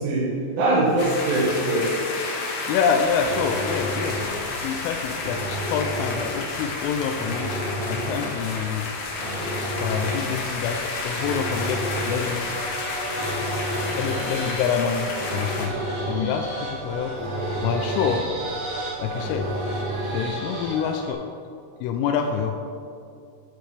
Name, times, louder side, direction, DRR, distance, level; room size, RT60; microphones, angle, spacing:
voice 1, 0.0-2.1, right 2 dB, 75° right, -8 dB, 4.2 m, -22 dB
sound 1, 1.0-15.7, left 3 dB, 60° left, 2.4 m, -31 dB
voice 2, 2.7-4.3 4.6-7.5 7.9-8.9 9.8-12.5 13.1-13.3 14.0-17.1 17.6-18.3 19.0-19.5 20.1-21.2 21.8-22.6, left 7 dB, 85° left, 5 dB, 3.1 m, -27 dB
sound 2, 3.0-20.5, equal, 35° left, 0.6 m, -32 dB
sound 3, 12.4-21.1, right 2 dB, 45° right, 3.5 m, -34 dB
12.5 x 10.5 x 3.4 m, 2.6 s
omnidirectional pair, 5.7 m